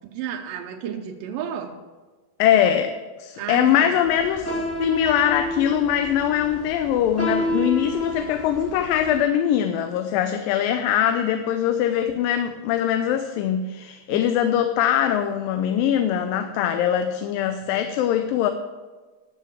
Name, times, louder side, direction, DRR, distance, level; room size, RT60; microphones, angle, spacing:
voice 1, 0.0-1.8 3.4-4.0 14.1-14.4, right 8 dB, 85° right, 3 dB, 2.5 m, -32 dB
voice 2, 2.4-18.5, left 10 dB, 85° left, 8 dB, 2.3 m, -22 dB
sound 1, 4.0-9.2, equal, 5° left, 1.3 m, -30 dB
12.5 x 7.0 x 6.1 m, 1.4 s
omnidirectional pair, 4.0 m